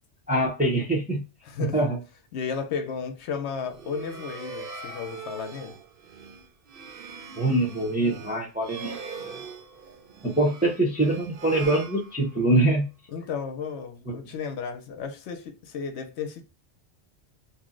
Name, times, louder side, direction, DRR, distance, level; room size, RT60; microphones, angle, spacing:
voice 1, 0.3-1.2 1.7-2.0 7.4-9.0 10.2-12.9 14.1-14.2, right 2 dB, 10° right, 0.5 m, -24 dB
voice 2, 1.4-1.8 2.3-5.7 13.1-16.4, left 6 dB, 75° left, 0.9 m, -33 dB
sound 1, 3.6-12.6, right 5 dB, 60° right, 0.7 m, -42 dB
2.7 x 2.0 x 3.7 m
omnidirectional pair, 1.2 m